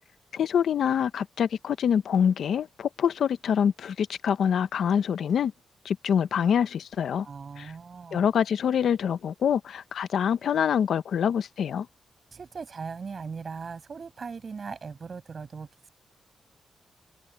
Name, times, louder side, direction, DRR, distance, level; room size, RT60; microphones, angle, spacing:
voice 1, 0.3-5.5 5.8-7.3 7.6-7.7 8.1-11.9, left 8 dB, 80° left, 0.9 m, -25 dB
voice 2, 7.2-8.3 12.3-15.7, right 5 dB, 40° right, 6.6 m, -39 dB
wide cardioid pair, 135°, 0 cm